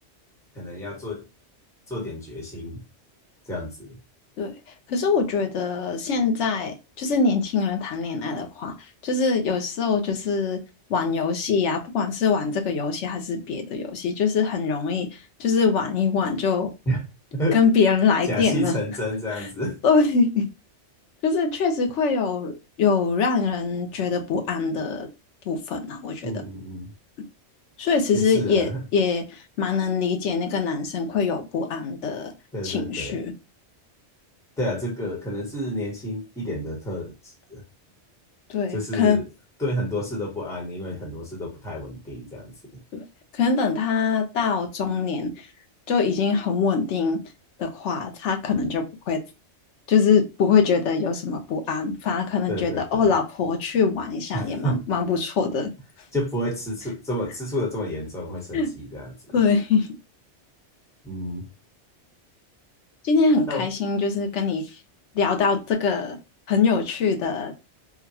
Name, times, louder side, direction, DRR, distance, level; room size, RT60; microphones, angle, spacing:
voice 1, 0.5-1.2 1.9-2.8 3.5-4.0 16.9-17.0 17.3-17.6 18.2-19.8 26.2-26.9 28.1-28.8 32.5-33.2 34.6-37.6 38.7-39.2 39.6-42.5 52.5-53.1 54.3-54.8 56.1-59.4 61.0-61.4 63.5-63.7, equal, 5° left, 1.0 m, -30 dB
voice 2, 4.9-8.7 9.0-10.6 10.9-16.7 17.5-18.7 19.3-19.5 19.8-20.5 21.2-25.1 25.5-26.4 27.8-32.3 32.6-33.3 38.5-39.2 42.9-43.0 43.3-45.5 45.9-47.2 47.6-49.2 49.9-55.7 58.5-58.7 59.3-60.0 63.0-64.7 65.1-66.2 66.5-67.5, left 5 dB, 85° left, 1.0 m, -23 dB
3.8 x 2.2 x 2.8 m
omnidirectional pair, 1.2 m